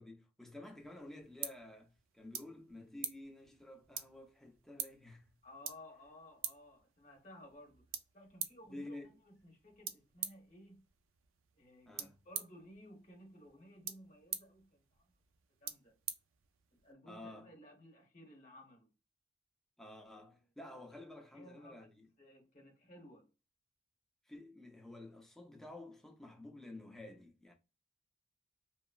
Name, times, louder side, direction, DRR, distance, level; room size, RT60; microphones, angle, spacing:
voice 1, 0.0-5.3 8.6-9.1 11.9-12.2 17.1-17.5 19.8-22.1 24.3-27.5, left 1 dB, ahead, 0.4 m, -51 dB
sound 1, 0.7-16.9, right 9 dB, 85° right, 0.4 m, -48 dB
voice 2, 5.4-7.9 8.1-9.0 9.2-10.8 11.5-15.0 15.6-15.9 16.7-18.9 21.1-21.9 22.2-23.3, left 1 dB, 35° left, 1.0 m, -57 dB
3.0 x 2.1 x 2.2 m
head